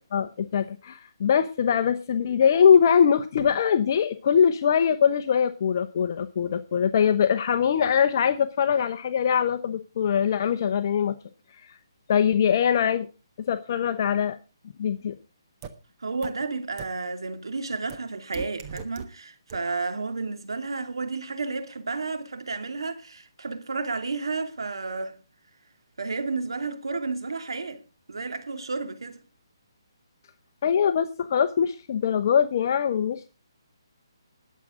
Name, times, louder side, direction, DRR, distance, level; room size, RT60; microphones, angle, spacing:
voice 1, 0.1-11.1 11.7-11.8 12.1-13.1 13.5-14.4 14.8-15.1 30.6-33.3, left 7 dB, 45° left, 0.9 m, -22 dB
sound 1, 15.6-15.7 16.2-16.3 16.8-16.9 17.9-18.0 18.3-19.0 19.5-19.6, right 8 dB, 25° right, 1.3 m, -37 dB
voice 2, 16.0-25.2 26.0-27.8 28.1-29.2, right 3 dB, 80° right, 2.5 m, -32 dB
20.5 x 7.5 x 3.8 m
hypercardioid pair, 155°, 2 cm